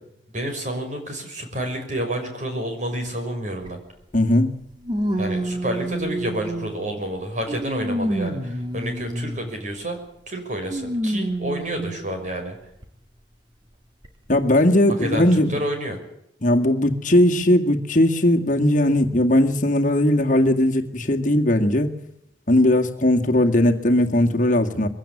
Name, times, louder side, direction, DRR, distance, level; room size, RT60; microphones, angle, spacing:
voice 1, 0.3-3.8 5.2-10.0 10.3-12.6 15.0-16.0, right 1 dB, 45° right, 6.0 m, -29 dB
sound 1, 3.6-3.7 4.8-6.9 7.5-9.5 10.7-12.1 12.8-12.9 14.0-14.1, right 1 dB, 25° right, 2.1 m, -27 dB
voice 2, 4.1-4.5 14.3-15.5 16.4-21.9 22.5-24.9, left 1 dB, 45° left, 2.0 m, -18 dB
22.5 x 17.0 x 8.5 m
head